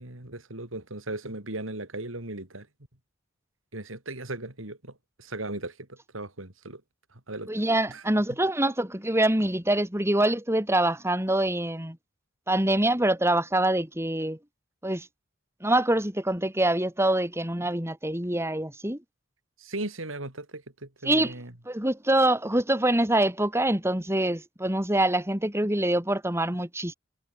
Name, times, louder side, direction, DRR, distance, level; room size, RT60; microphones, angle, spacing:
voice 1, 0.0-2.7 3.7-6.8 7.1-7.5 7.9-8.0 19.6-21.5, right 2 dB, 85° right, 4.4 m, -37 dB
voice 2, 7.5-12.0 12.5-14.4 14.8-15.1 15.6-19.0 21.0-21.3 21.7-26.9, right 1 dB, 15° right, 4.0 m, -25 dB
head